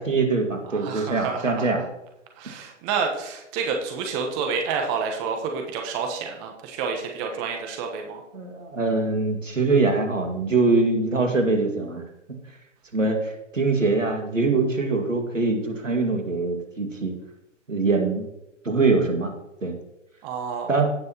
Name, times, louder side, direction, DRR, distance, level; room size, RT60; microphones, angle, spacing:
voice 1, 0.0-1.8 8.3-12.0 12.9-17.1 17.7-18.2 18.6-19.3 19.6-19.8 20.7-20.9, right 3 dB, 85° right, 4 dB, 2.1 m, -23 dB
voice 2, 0.7-1.7 2.4-8.2 20.2-20.8, right 5 dB, 25° right, 3 dB, 1.2 m, -29 dB
17.0 x 6.1 x 3.0 m, 0.90 s
figure-of-eight pair, 130°, 37 cm